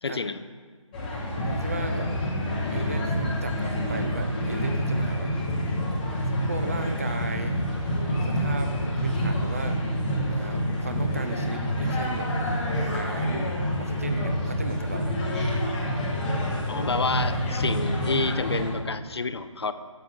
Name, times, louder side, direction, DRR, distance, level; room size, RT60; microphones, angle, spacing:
voice 1, 0.0-0.4 16.7-19.7, left 4 dB, 50° left, 11 dB, 0.4 m, -29 dB
sound 1, 0.9-18.7, equal, 15° left, 0.9 m, -27 dB
voice 2, 1.5-2.1 2.7-5.3 6.4-7.6 8.3-9.8 10.3-12.3 12.8-15.1, right 3 dB, 25° right, 7 dB, 0.4 m, -36 dB
6.6 x 5.7 x 6.3 m, 1.5 s
figure-of-eight pair, 155°, 17 cm